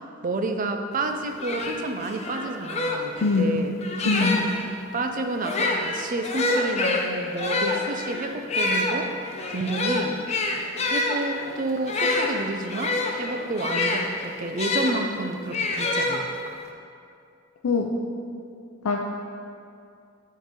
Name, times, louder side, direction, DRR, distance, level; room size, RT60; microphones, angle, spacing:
voice 1, 0.2-3.8 4.0-4.5 4.9-9.1 9.5-10.2 10.9-16.3, right 2 dB, 35° right, 5 dB, 0.4 m, -30 dB
sound 1, 1.0-1.1 1.4-4.6 5.3-15.0 15.5-16.6, left 2 dB, 30° left, 0.5 m, -27 dB
voice 2, 3.2-3.6 4.1-4.4 17.6-17.9 18.8-19.0, left 4 dB, 85° left, 1 dB, 0.4 m, -22 dB
7.8 x 3.9 x 5.1 m, 2.4 s
head